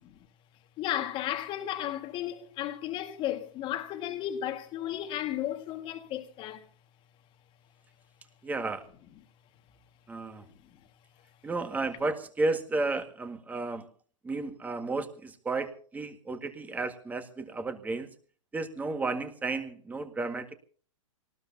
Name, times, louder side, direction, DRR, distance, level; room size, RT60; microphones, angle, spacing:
voice 1, 0.8-6.6, left 12 dB, 30° left, 1.8 m, -34 dB
voice 2, 8.4-8.9 10.1-10.4 11.4-13.9 14.2-18.1 18.5-20.5, right 3 dB, 10° right, 1.7 m, -33 dB
25.5 x 19.0 x 2.8 m
hypercardioid pair, 135°, 18 cm